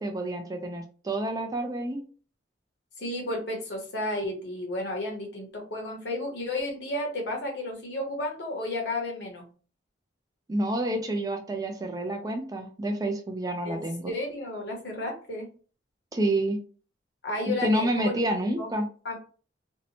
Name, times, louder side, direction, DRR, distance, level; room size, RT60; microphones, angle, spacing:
voice 1, 0.0-2.0 10.5-14.1 16.1-16.6 17.6-18.9, right 1 dB, 20° right, 4 dB, 0.3 m, -28 dB
voice 2, 3.0-9.4 13.6-15.5 17.2-18.2 18.6-18.7 19.0-19.2, left 1 dB, 60° left, 1 dB, 0.9 m, -32 dB
2.6 x 2.1 x 2.8 m, 0.40 s
head